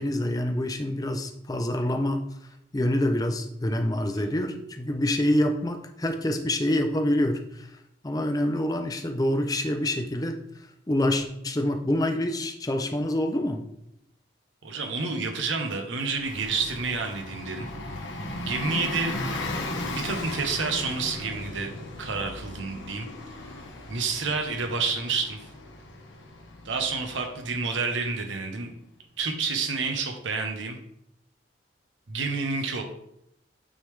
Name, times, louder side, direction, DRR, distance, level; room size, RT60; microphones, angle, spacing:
voice 1, 0.0-2.2 2.7-7.7 8.0-10.4 10.9-13.6, left 1 dB, 20° left, 5 dB, 0.6 m, -26 dB
voice 2, 14.6-17.7 18.4-19.2 19.9-21.7 22.0-23.1 23.9-25.5 26.6-28.7 29.2-30.8 32.1-32.8, right 4 dB, 85° right, 4 dB, 0.9 m, -29 dB
Bus, 16.2-28.5, left 2 dB, 85° left, 1.1 m, -37 dB
8.8 x 3.6 x 3.2 m, 0.78 s
head